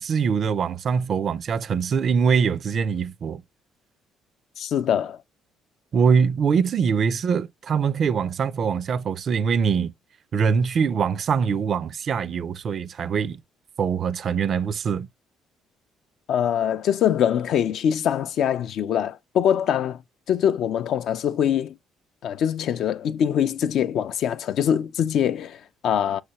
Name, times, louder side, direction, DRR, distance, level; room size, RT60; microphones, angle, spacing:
voice 1, 0.0-3.4 5.9-9.9 10.3-13.4 13.8-15.1, right 6 dB, 55° right, 0.4 m, -23 dB
voice 2, 4.6-5.2 16.3-20.0 20.3-21.8 22.2-26.2, left 9 dB, 65° left, 0.4 m, -23 dB
5.7 x 3.2 x 2.8 m
supercardioid pair, 70°, 0 cm